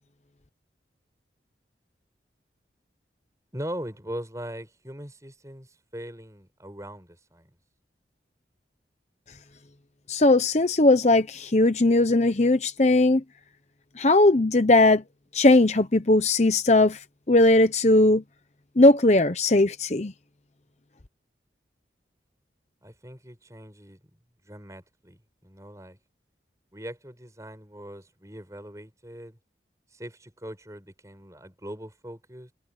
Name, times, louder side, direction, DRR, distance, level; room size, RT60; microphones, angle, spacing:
voice 1, 3.5-7.5 22.8-24.0 24.4-26.0 26.7-29.4 29.9-32.5, equal, 20° right, 6.1 m, -40 dB
voice 2, 10.1-13.2 14.0-15.0 15.3-17.0 17.3-18.2 18.8-20.1, left 2 dB, 40° left, 0.9 m, -19 dB
head